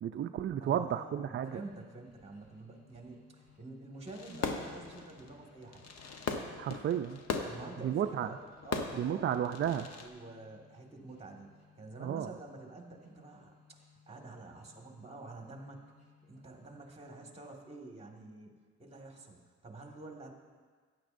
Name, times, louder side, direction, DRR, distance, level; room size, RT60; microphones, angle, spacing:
voice 1, 0.0-1.6 6.6-7.2 7.8-8.3 8.9-9.9 12.0-12.3, right 9 dB, 40° right, 8 dB, 0.4 m, -33 dB
voice 2, 0.6-5.9 7.4-9.3 9.9-11.5 11.8-15.8 16.2-20.3, right 2 dB, 20° right, 1 dB, 1.8 m, -48 dB
sound 1, 1.4-17.5, left 6 dB, 25° left, 3.0 m, -64 dB
Fireworks, 4.1-10.1, left 5 dB, 60° left, 1.0 m, -40 dB
14.5 x 10.0 x 2.6 m, 1.5 s
cardioid pair, 90°, 30 cm